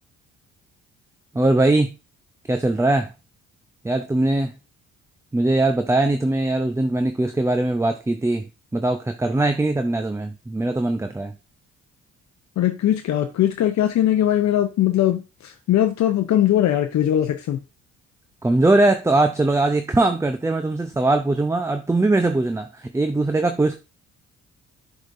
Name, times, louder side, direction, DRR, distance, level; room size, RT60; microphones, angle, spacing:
voice 1, 1.3-1.9 2.5-3.1 3.8-4.5 5.3-8.5 8.7-11.3 18.4-23.8, right 2 dB, 10° right, 7 dB, 0.6 m, -21 dB
voice 2, 12.6-17.6, left 11 dB, 65° left, 6 dB, 0.7 m, -20 dB
7.9 x 4.9 x 2.6 m, 0.28 s
cardioid pair, 90°, 30 cm